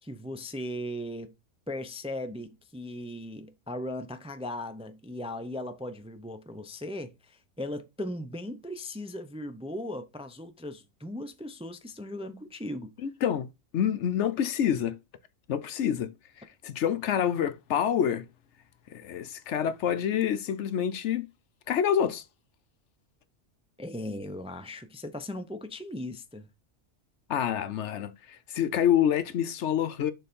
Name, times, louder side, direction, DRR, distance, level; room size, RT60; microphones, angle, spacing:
voice 1, 0.0-1.3 1.7-12.9 23.8-26.5, left 1 dB, 5° right, 0.5 m, -38 dB
voice 2, 13.0-13.5 13.7-15.0 15.5-16.1 16.4-18.2 18.9-21.3 21.7-22.2 27.3-30.1, left 9 dB, 70° left, 0.9 m, -27 dB
6.9 x 3.9 x 5.2 m
omnidirectional pair, 1.3 m